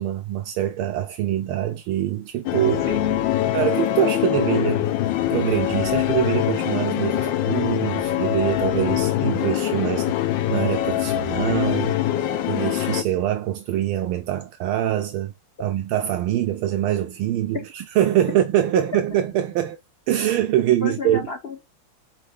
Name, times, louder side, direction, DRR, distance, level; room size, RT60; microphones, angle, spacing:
voice 1, 0.0-2.9 3.5-4.8 5.3-10.2 10.5-12.0 12.5-15.3 15.6-19.8 20.1-21.3, right 12 dB, 80° right, 1.4 m, -24 dB
sound 1, 2.5-13.0, left 13 dB, 70° left, 1.3 m, -23 dB
voice 2, 2.9-3.3 15.6-15.7 18.7-18.8 20.8-21.6, left 6 dB, 90° left, 0.5 m, -28 dB
4.5 x 4.4 x 4.8 m
omnidirectional pair, 2.4 m